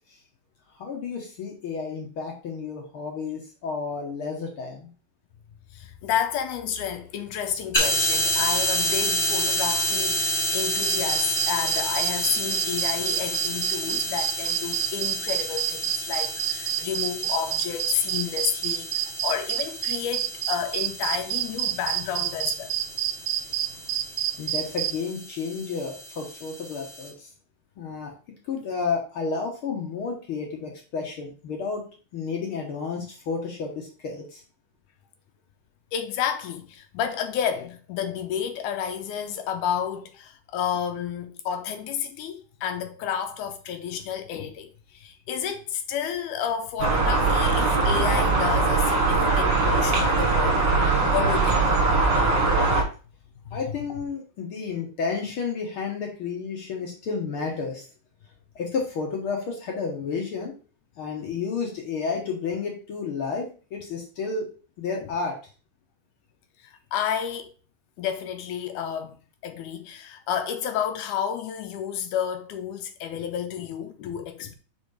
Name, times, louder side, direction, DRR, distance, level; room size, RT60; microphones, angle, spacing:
voice 1, 0.8-4.9 24.4-27.3 27.8-28.1 28.4-31.8 32.1-34.4 53.5-57.8 58.5-60.5 61.0-64.5 64.8-65.3, left 5 dB, 60° left, 1.5 m, -31 dB
voice 2, 5.7-22.7 35.9-50.7 51.1-51.7 53.5-53.6 61.2-61.4 66.6-67.5 68.0-69.2 69.4-74.5, left 8 dB, 80° left, 2.2 m, -31 dB
sound 1, 7.7-27.1, equal, 25° left, 1.3 m, -30 dB
sound 2, 10.8-24.9, right 12 dB, 80° right, 1.7 m, -27 dB
sound 3, 46.8-52.8, right 3 dB, 50° right, 1.5 m, -21 dB
5.2 x 4.7 x 4.7 m
omnidirectional pair, 3.6 m